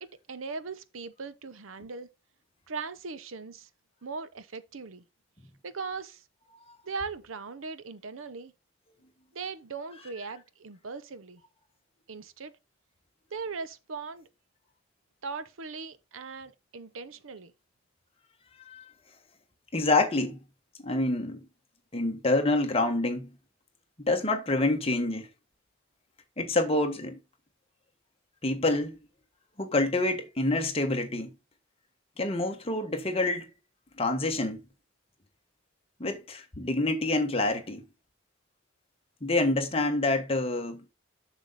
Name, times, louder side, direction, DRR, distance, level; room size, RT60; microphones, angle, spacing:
voice 1, 0.0-2.1 2.7-3.7 4.0-5.0 5.6-6.2 6.8-8.5 9.3-11.4 12.1-12.5 13.3-14.3 15.2-17.5, right 4 dB, 80° right, 0.8 m, -39 dB
voice 2, 19.7-20.4 20.8-21.4 21.9-23.3 24.0-25.3 26.4-27.2 28.4-29.0 29.6-31.3 32.2-33.5 34.0-34.6 36.0-37.8 39.2-40.8, left 2 dB, 30° left, 1.4 m, -27 dB
7.4 x 6.6 x 4.1 m
head